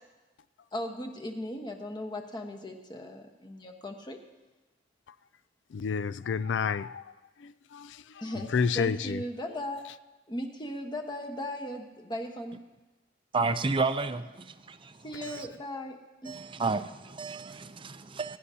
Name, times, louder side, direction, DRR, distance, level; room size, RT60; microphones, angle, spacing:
voice 1, 0.7-4.2 8.2-9.8 10.3-12.6 15.0-16.4, left 1 dB, 25° left, 1.2 m, -37 dB
voice 2, 5.7-7.1 7.4-9.2 15.3-15.4, left 6 dB, 75° left, 0.4 m, -31 dB
voice 3, 13.3-14.9 15.2-15.5 16.3-18.4, right 3 dB, 30° right, 0.5 m, -31 dB
22.5 x 11.0 x 2.8 m
head